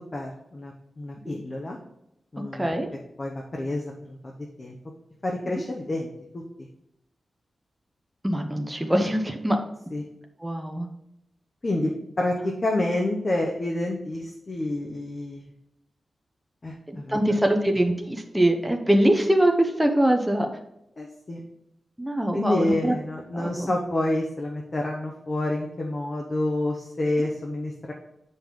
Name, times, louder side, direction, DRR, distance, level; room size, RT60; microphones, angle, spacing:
voice 1, 0.1-1.8 2.3-2.7 3.2-4.8 5.2-6.4 9.9-10.0 11.6-15.5 16.6-17.2 21.0-21.4 22.3-27.9, left 1 dB, 30° left, 0 dB, 0.8 m, -28 dB
voice 2, 2.5-2.9 8.2-9.6 10.4-10.9 16.9-20.5 22.0-22.9 23.3-23.7, right 1 dB, 5° right, 3 dB, 0.6 m, -23 dB
7.6 x 5.2 x 3.8 m, 0.84 s
wide cardioid pair, 170°, 0 cm